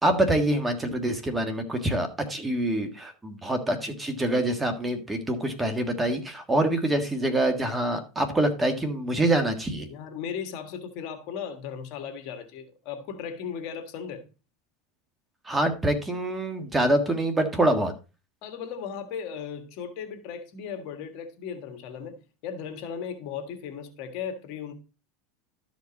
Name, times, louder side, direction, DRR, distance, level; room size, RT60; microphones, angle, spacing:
voice 1, 0.0-9.9 15.5-17.9, right 1 dB, 10° right, 1.6 m, -25 dB
voice 2, 9.9-14.2 18.4-22.2 22.4-24.7, left 7 dB, 60° left, 1.6 m, -36 dB
12.5 x 5.2 x 4.0 m
supercardioid pair, 120°, 0 cm